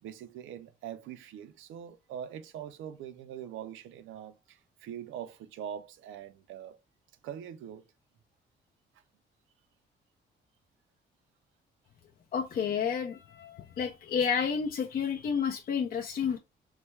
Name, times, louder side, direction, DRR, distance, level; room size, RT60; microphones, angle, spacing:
voice 1, 0.0-6.8 7.2-7.8, right 9 dB, 85° right, 0.5 m, -43 dB
voice 2, 12.3-16.4, left 7 dB, 45° left, 0.5 m, -30 dB
3.2 x 2.2 x 3.1 m
cardioid pair, 90°, 20 cm